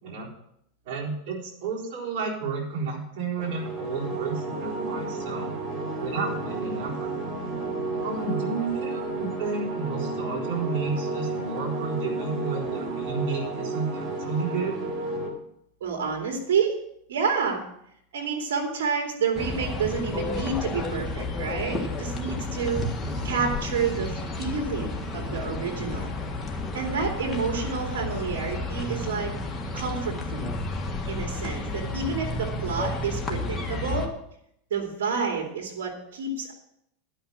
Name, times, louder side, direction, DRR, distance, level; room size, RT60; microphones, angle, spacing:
voice 1, 0.9-5.5 6.0-7.1 8.0-14.8 23.0-23.4 31.8-32.2, right 4 dB, 60° right, -3 dB, 4.3 m, -32 dB
sound 1, 3.4-15.3, right 3 dB, 30° right, 4.1 m, -32 dB
voice 2, 15.8-16.8 17.1-17.6 18.1-22.9 23.2-26.1 26.7-29.3 29.7-30.5 31.1-34.1 34.7-36.5, right 5 dB, 85° right, 2 dB, 2.6 m, -29 dB
sound 2, 19.3-34.1, left 2 dB, 15° left, 1.7 m, -31 dB
11.5 x 5.8 x 7.4 m, 0.74 s
supercardioid pair, 120°, 0 cm